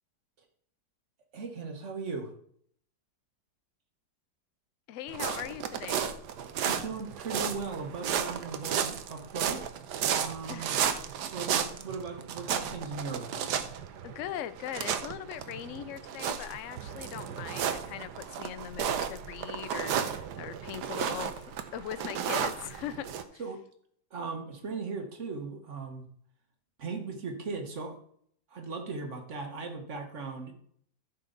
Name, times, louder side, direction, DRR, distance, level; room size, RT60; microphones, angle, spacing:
voice 1, 1.3-2.3 6.6-9.6 10.1-10.7 11.3-13.5 23.4-23.6 24.1-26.1 26.8-28.0 28.5-30.5, right 4 dB, 45° right, 5 dB, 1.6 m, -38 dB
voice 2, 4.9-6.1 10.5-10.7 14.0-23.4, left 11 dB, 65° left, 13 dB, 0.7 m, -40 dB
sound 1, 5.1-23.2, right 8 dB, 70° right, 1.3 m, -33 dB
14.0 x 5.7 x 4.0 m, 0.63 s
omnidirectional pair, 1.9 m